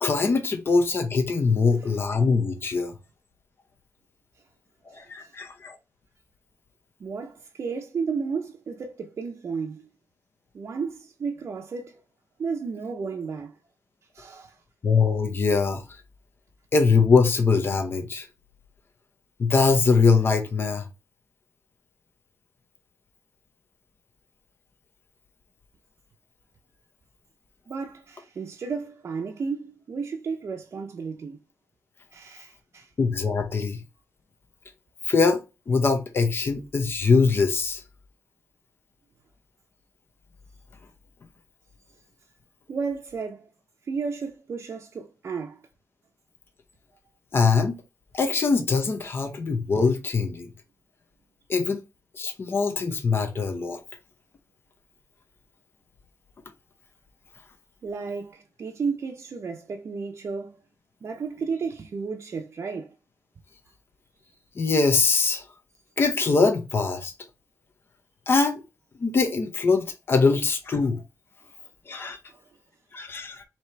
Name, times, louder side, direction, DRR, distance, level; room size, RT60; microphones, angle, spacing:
voice 1, 0.0-2.9 4.9-5.8 14.8-15.8 16.7-18.3 19.4-20.9 33.0-33.8 35.0-35.4 35.7-37.8 47.3-47.8 48.1-50.5 51.5-51.8 52.2-53.8 64.6-65.4 66.0-67.1 68.3-68.6 69.0-71.0 71.9-72.2 72.9-73.4, left 4 dB, 40° left, 0.8 m, -22 dB
voice 2, 7.0-9.9 10.5-12.0 12.4-13.6 14.1-14.6 27.7-31.4 32.1-32.9 42.7-43.5 43.8-45.6 57.8-60.6 61.0-62.9 64.2-64.4 72.3-72.5, right 5 dB, 50° right, 0.6 m, -33 dB
4.5 x 2.9 x 3.3 m
wide cardioid pair, 115°, 6 cm